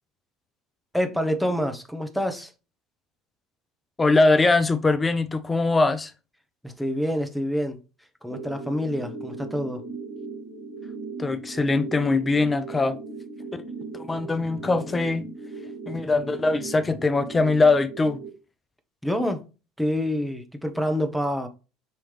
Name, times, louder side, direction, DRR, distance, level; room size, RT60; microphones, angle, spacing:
voice 1, 0.9-2.5 6.6-7.8 8.2-9.8 19.0-19.4 19.8-21.5, equal, ahead, 0.9 m, -27 dB
voice 2, 4.0-6.1 11.2-13.0 13.5-13.6 13.9-15.3 15.9-18.2, left 3 dB, 20° left, 0.5 m, -22 dB
sound 1, 8.3-18.3, right 3 dB, 85° right, 1.8 m, -38 dB
5.6 x 3.1 x 3.1 m
figure-of-eight pair, 65°, 0 cm